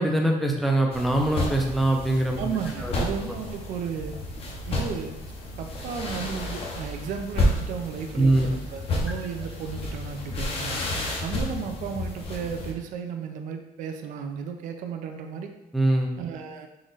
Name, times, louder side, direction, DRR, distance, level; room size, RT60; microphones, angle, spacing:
voice 1, 0.0-2.4 2.8-3.3 8.2-8.5 15.7-16.1, right 1 dB, ahead, 1 dB, 0.5 m, -23 dB
sound 1, 0.9-12.7, left 1 dB, 40° left, 0.7 m, -31 dB
voice 2, 2.4-4.2 4.7-5.1 5.6-10.8 11.2-15.5 16.2-16.7, right 7 dB, 60° right, 5 dB, 0.5 m, -34 dB
3.8 x 3.0 x 3.9 m, 0.96 s
cardioid pair, 145°, 16 cm